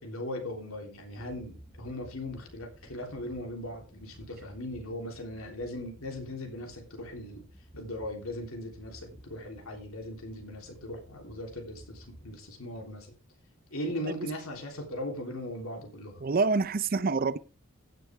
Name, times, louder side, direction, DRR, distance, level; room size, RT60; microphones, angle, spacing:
voice 1, 0.0-7.5 7.7-13.1 13.7-16.2, left 1 dB, 80° left, 3.4 m, -39 dB
sound 1, 1.1-12.4, equal, ahead, 2.3 m, -54 dB
voice 2, 16.2-17.4, right 4 dB, 40° right, 0.5 m, -26 dB
15.5 x 6.9 x 3.5 m
head